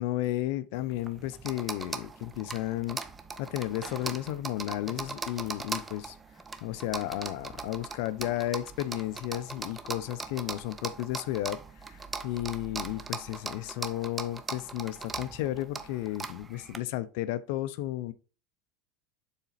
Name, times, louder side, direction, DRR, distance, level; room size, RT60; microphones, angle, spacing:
voice 1, 0.0-3.0 3.4-6.2 6.6-11.6 11.9-18.1, left 14 dB, 65° left, 0.6 m, -33 dB
sound 1, 0.7-16.8, right 4 dB, 15° right, 0.6 m, -40 dB
7.0 x 4.1 x 4.0 m
supercardioid pair, 135°, 0 cm